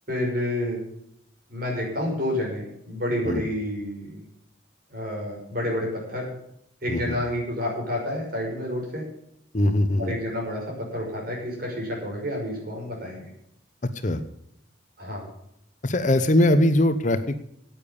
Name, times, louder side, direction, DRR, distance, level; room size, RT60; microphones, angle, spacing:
voice 1, 0.1-0.8 1.5-4.2 4.9-6.3 6.8-9.0 10.0-13.3 15.0-15.3, left 1 dB, 45° right, -2 dB, 5.7 m, -29 dB
voice 2, 9.5-10.1 13.9-14.2 15.8-17.3, left 1 dB, 40° left, 10 dB, 0.8 m, -21 dB
10.0 x 8.9 x 8.4 m, 0.75 s
head